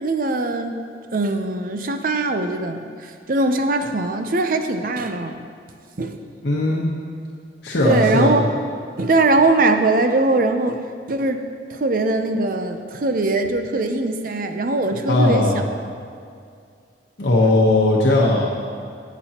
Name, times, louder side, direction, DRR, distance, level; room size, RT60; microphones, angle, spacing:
voice 1, 0.0-0.8 1.1-5.4 6.0-6.2 7.8-8.5 9.0-10.8 11.1-11.4 11.7-15.6 17.4-17.5, right 2 dB, 50° right, 7 dB, 0.6 m, -21 dB
voice 2, 6.4-6.8 7.6-8.4 15.1-15.6 17.2-18.5, left 2 dB, 75° left, -4 dB, 1.0 m, -17 dB
16.5 x 6.1 x 2.9 m, 2.3 s
head